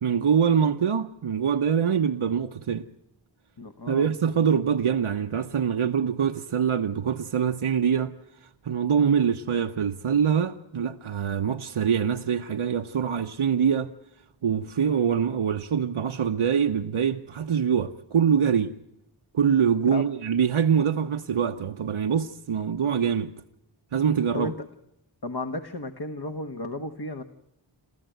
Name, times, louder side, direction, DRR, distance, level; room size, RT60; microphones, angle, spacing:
voice 1, 0.0-2.9 3.9-8.1 8.4-13.9 14.4-18.7 19.3-23.3 23.9-24.5, right 7 dB, 85° right, 0.8 m, -24 dB
voice 2, 3.6-4.1 14.8-15.0 19.8-20.0 24.3-24.7 25.2-27.2, left 2 dB, 50° left, 1.3 m, -34 dB
28.5 x 14.5 x 9.1 m
wide cardioid pair, 45°, 48 cm